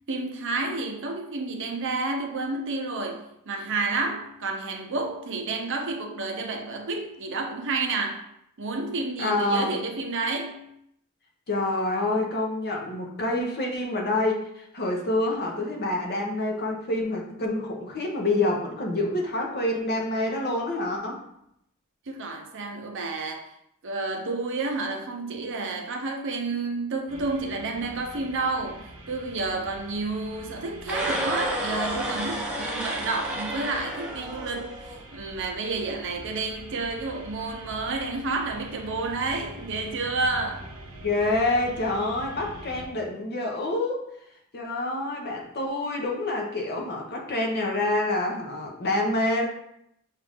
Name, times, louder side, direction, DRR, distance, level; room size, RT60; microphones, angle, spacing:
voice 1, 0.1-8.2 8.6-10.7 22.1-23.5 23.8-40.7, right 3 dB, 60° right, 3 dB, 0.6 m, -30 dB
voice 2, 9.2-9.8 11.5-21.2 41.0-44.0 44.5-49.4, left 2 dB, 50° left, 0 dB, 0.8 m, -27 dB
sound 1, 27.1-42.9, right 1 dB, 75° right, 0.9 m, -44 dB
sound 2, 30.8-35.0, right 1 dB, 5° right, 0.7 m, -31 dB
5.8 x 2.5 x 3.5 m, 0.76 s
head